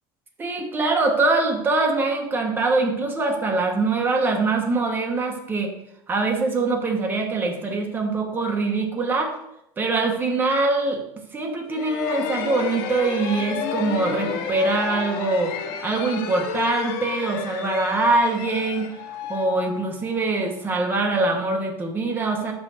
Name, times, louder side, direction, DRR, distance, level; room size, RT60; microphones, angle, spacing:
voice 1, 0.4-5.7 6.1-9.4 9.8-11.0 11.3-15.5 15.8-18.9 19.3-22.5, right 3 dB, 15° right, 2 dB, 0.9 m, -23 dB
sound 1, 11.7-20.4, left 7 dB, 75° left, 0.8 m, -31 dB
6.1 x 5.6 x 4.0 m, 0.78 s
cardioid pair, 175°, 13 cm